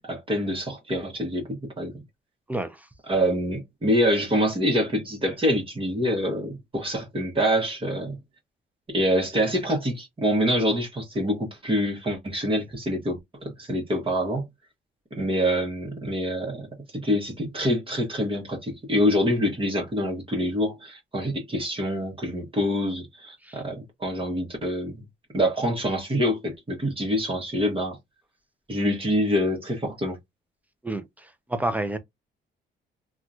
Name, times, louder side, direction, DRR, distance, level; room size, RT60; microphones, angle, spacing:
voice 1, 0.1-2.0 3.1-8.2 8.9-14.4 15.1-16.7 16.9-25.1 25.3-28.0 28.7-30.2, equal, 25° right, 1.2 m, -26 dB
voice 2, 31.5-32.0, right 1 dB, 10° right, 0.6 m, -28 dB
2.8 x 2.4 x 2.4 m
cardioid pair, 90°, 20 cm